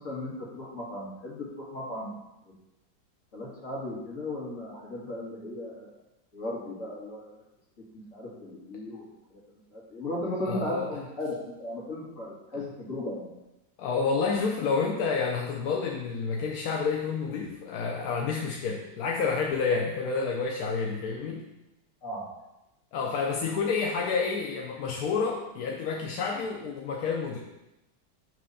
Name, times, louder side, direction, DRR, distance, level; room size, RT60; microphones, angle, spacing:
voice 1, 0.0-2.2 2.5-2.6 3.3-5.9 6.3-7.4 7.9-9.4 9.7-13.3 22.0-22.2, left 1 dB, 45° left, -5 dB, 1.9 m, -36 dB
voice 2, 10.5-10.9 12.5-12.6 13.8-21.4 22.9-27.4, left 5 dB, 65° left, -1 dB, 1.0 m, -29 dB
6.2 x 3.3 x 5.4 m, 0.93 s
omnidirectional pair, 2.0 m